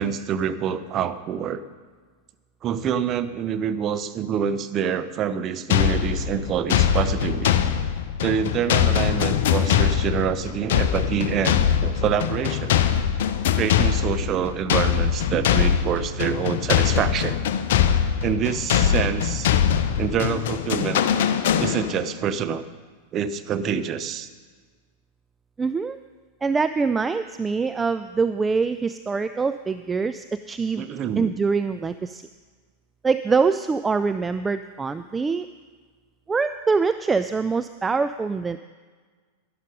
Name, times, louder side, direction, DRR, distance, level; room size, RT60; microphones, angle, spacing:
voice 1, 0.0-1.6 2.6-7.6 8.2-12.8 13.6-17.4 18.2-19.5 20.0-21.1 21.6-22.7 23.1-24.3 30.8-31.3, right 8 dB, 30° right, 11 dB, 0.7 m, -26 dB
sound 1, 5.7-22.1, left 9 dB, 55° left, 0.7 m, -22 dB
voice 2, 25.6-26.0 26.4-30.8 31.2-32.2 33.0-35.5 36.3-38.6, right 4 dB, 15° right, 11 dB, 0.3 m, -24 dB
11.5 x 11.5 x 5.2 m, 1.5 s
figure-of-eight pair, 90°, 0 cm